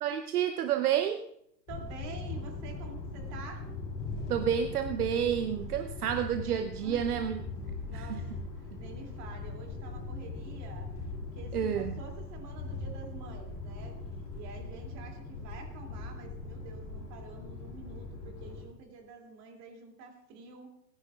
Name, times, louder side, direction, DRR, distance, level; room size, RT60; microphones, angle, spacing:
voice 1, 0.0-1.3 4.3-7.4 7.9-8.2 11.5-12.0, right 9 dB, 60° right, 9 dB, 0.9 m, -30 dB
sound 1, 1.7-18.6, left 3 dB, 25° left, 6.8 m, -40 dB
voice 2, 1.7-3.6 6.8-7.1 7.8-8.2 8.6-14.0 14.3-20.7, right 4 dB, 35° right, 2 dB, 2.9 m, -48 dB
29.0 x 10.5 x 2.5 m, 0.75 s
hypercardioid pair, 115°, 50 cm